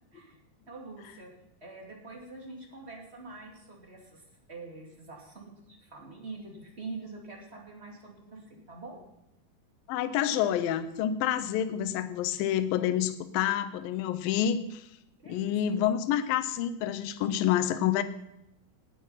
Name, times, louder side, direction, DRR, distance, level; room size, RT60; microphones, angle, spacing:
voice 1, 0.7-1.3 1.6-9.0 15.2-15.6, right 3 dB, 20° right, 0 dB, 2.1 m, -45 dB
voice 2, 9.9-14.9 15.3-18.0, left 10 dB, 75° left, 11 dB, 2.4 m, -28 dB
19.0 x 8.8 x 5.7 m, 0.84 s
omnidirectional pair, 4.4 m